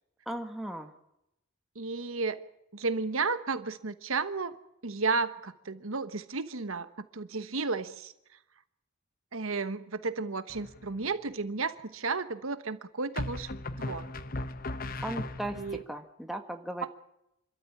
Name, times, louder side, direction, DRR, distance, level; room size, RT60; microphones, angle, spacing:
voice 1, 0.3-0.9 15.0-16.9, right 1 dB, ahead, 5 dB, 1.5 m, -37 dB
voice 2, 1.7-2.4 2.7-4.5 4.8-8.1 9.3-13.5 13.8-14.1 15.5-15.8, right 4 dB, 75° right, 11 dB, 1.2 m, -33 dB
sound 1, 10.5-11.1 13.1-15.8, left 2 dB, 40° left, 0.8 m, -37 dB
26.5 x 13.0 x 8.7 m, 0.83 s
head